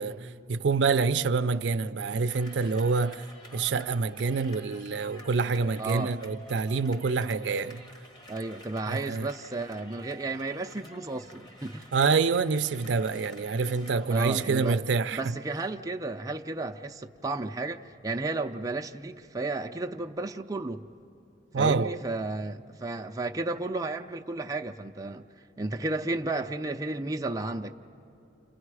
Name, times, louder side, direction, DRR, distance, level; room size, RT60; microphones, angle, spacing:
voice 1, 0.0-3.2 3.5-7.8 8.9-9.3 11.9-15.2 21.5-22.0, right 4 dB, 85° right, 0.5 m, -27 dB
sound 1, 2.3-14.8, equal, 25° left, 1.4 m, -50 dB
voice 2, 5.8-6.1 8.3-11.9 14.1-14.8 15.1-20.8 21.6-25.3 25.6-27.7, right 2 dB, 20° right, 0.5 m, -33 dB
30.0 x 27.5 x 4.8 m
head